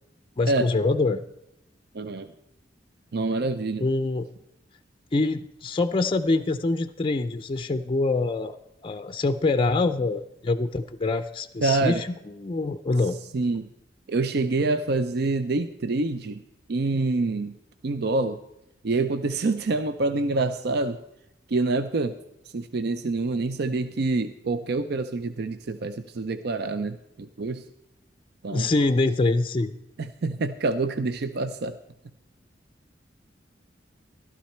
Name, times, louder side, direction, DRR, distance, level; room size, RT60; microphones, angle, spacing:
voice 1, 0.4-1.2 3.8-4.3 5.1-8.6 8.8-13.2 28.5-29.7, left 3 dB, 30° left, 10 dB, 0.4 m, -25 dB
voice 2, 1.9-2.3 3.1-3.9 11.6-12.0 13.3-13.7 14.1-16.4 16.7-17.6 17.8-18.4 18.8-21.0 21.5-22.2 22.5-27.6 28.4-28.7 30.0-31.8, right 3 dB, 60° right, 11 dB, 0.5 m, -26 dB
14.5 x 12.5 x 4.4 m, 0.87 s
head